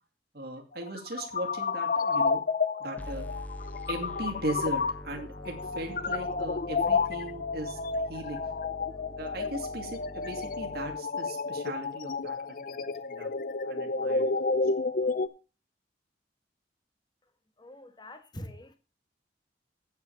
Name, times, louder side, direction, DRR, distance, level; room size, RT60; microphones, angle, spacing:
voice 1, 0.3-2.4 2.8-3.3 3.9-8.5 9.2-13.3 13.6-14.5, right 1 dB, 60° right, 2.4 m, -38 dB
sound 1, 0.8-15.3, left 4 dB, 50° left, 0.6 m, -31 dB
sound 2, 3.0-11.0, equal, 10° left, 0.8 m, -44 dB
voice 2, 17.6-18.7, left 1 dB, 25° left, 1.4 m, -44 dB
9.1 x 6.2 x 6.9 m
head